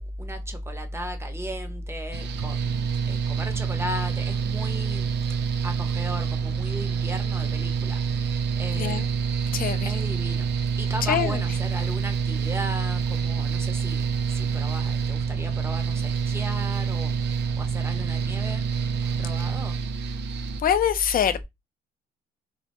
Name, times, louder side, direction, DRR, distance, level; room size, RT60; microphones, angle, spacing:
voice 1, 0.2-5.1 5.6-9.1 9.8-18.7 19.0-19.8, equal, 15° right, 0.6 m, -33 dB
Mechanical fan, 2.1-20.6, right 7 dB, 60° right, 0.4 m, -27 dB
voice 2, 8.8-9.1 9.5-9.9 11.1-11.4 20.6-21.4, left 9 dB, 45° left, 0.4 m, -24 dB
2.2 x 2.1 x 2.8 m
cardioid pair, 90°, 20 cm